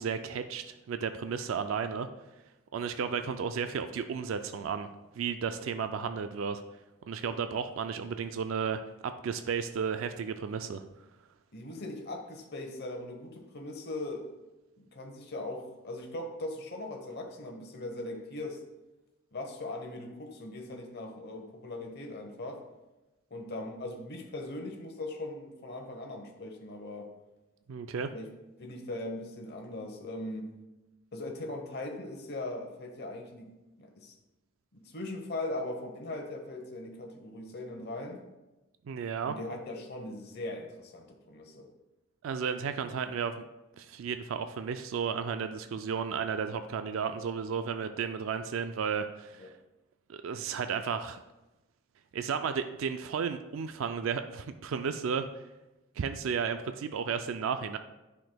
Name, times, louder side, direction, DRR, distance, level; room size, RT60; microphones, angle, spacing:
voice 1, 0.0-2.1 2.7-4.9 5.2-6.6 7.1-10.8 27.7-28.1 38.9-39.4 42.2-43.5 43.8-49.5 50.1-51.2 52.1-55.3 56.0-57.8, right 6 dB, 65° right, 9 dB, 0.3 m, -33 dB
voice 2, 11.5-14.3 14.8-18.6 19.3-22.6 23.3-27.1 28.1-28.3 28.6-30.5 31.1-33.5 33.8-34.1 34.7-38.2 39.2-41.7 49.4-49.5, left 2 dB, 50° left, 3 dB, 1.0 m, -40 dB
9.2 x 5.9 x 2.2 m, 1.0 s
head